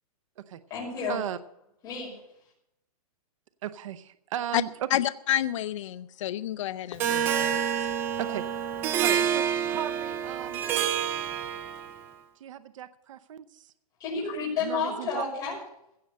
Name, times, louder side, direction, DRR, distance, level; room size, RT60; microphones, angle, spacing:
voice 1, 0.7-1.2 1.8-2.1 14.0-15.6, left 5 dB, 20° left, 5.7 m, -30 dB
voice 2, 3.6-4.7 8.2-8.4 9.0-10.6 12.4-13.7 14.6-15.2, right 10 dB, 55° right, 0.8 m, -36 dB
voice 3, 4.9-7.9, left 12 dB, 55° left, 0.5 m, -29 dB
Harp, 7.0-12.0, right 9 dB, 10° right, 0.4 m, -28 dB
16.0 x 6.5 x 7.9 m
hypercardioid pair, 165°, 19 cm